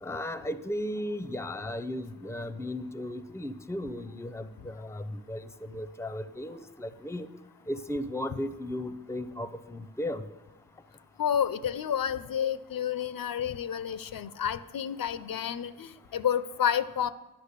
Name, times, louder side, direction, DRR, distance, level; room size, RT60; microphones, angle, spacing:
voice 1, 0.0-7.3 7.7-10.2, left 1 dB, 10° left, 12 dB, 0.5 m, -35 dB
voice 2, 11.2-17.1, left 9 dB, 85° left, 14 dB, 0.5 m, -30 dB
9.9 x 6.0 x 6.7 m, 1.0 s
wide cardioid pair, 75°, 33 cm